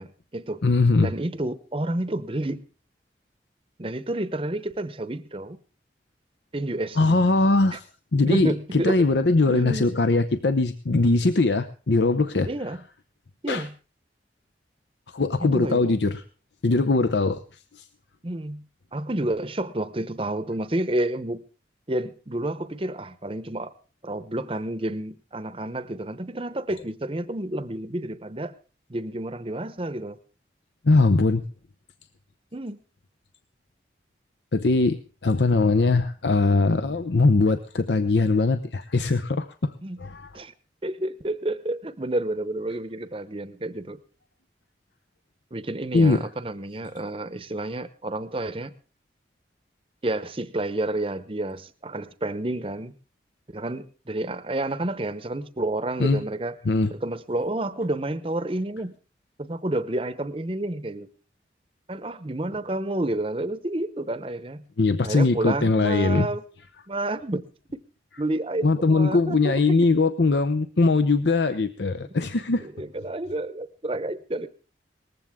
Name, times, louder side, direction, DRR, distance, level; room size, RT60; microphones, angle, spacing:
voice 1, 0.0-0.6 1.0-2.6 3.8-5.6 6.5-7.2 7.7-7.8 8.3-9.0 9.5-10.0 12.4-12.8 13.4-13.7 15.4-15.9 18.2-18.6 18.9-21.4 21.9-23.7 24.0-28.5 28.9-30.2 32.5-32.8 39.8-40.0 40.3-40.5 40.8-44.0 45.5-48.7 50.0-52.9 53.5-56.6 56.9-59.0 59.4-61.1 61.9-64.6 65.0-66.4 66.9-67.5 67.7-67.8 68.2-69.8 72.1-72.3 72.6-74.5, right 1 dB, 30° right, 13 dB, 0.8 m, -30 dB
voice 2, 0.6-1.1 7.0-7.9 8.1-12.5 13.5-13.7 15.1-16.2 16.6-17.4 17.7-17.9 30.8-31.4 34.5-39.7 40.0-40.3 45.9-46.2 56.0-56.2 56.7-56.9 64.8-66.3 68.6-72.7, left 3 dB, 75° left, 11 dB, 0.7 m, -21 dB
19.5 x 15.0 x 3.6 m, 0.36 s
head